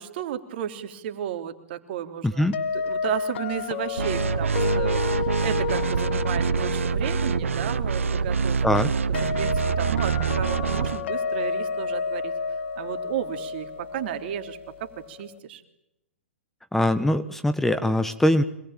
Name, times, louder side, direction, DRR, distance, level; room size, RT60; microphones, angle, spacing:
voice 1, 0.0-8.9 9.2-12.3 12.8-15.6, right 11 dB, 50° right, 8 dB, 3.2 m, -33 dB
voice 2, 2.2-2.6 8.6-8.9 16.7-18.4, left 1 dB, 5° left, 11 dB, 1.2 m, -22 dB
sound 1, 2.5-15.4, left 7 dB, 60° left, 1.7 m, -31 dB
sound 2, 4.0-11.0, right 6 dB, 80° right, 1.3 m, -25 dB
26.0 x 20.0 x 9.0 m, 0.83 s
hypercardioid pair, 120°, 7 cm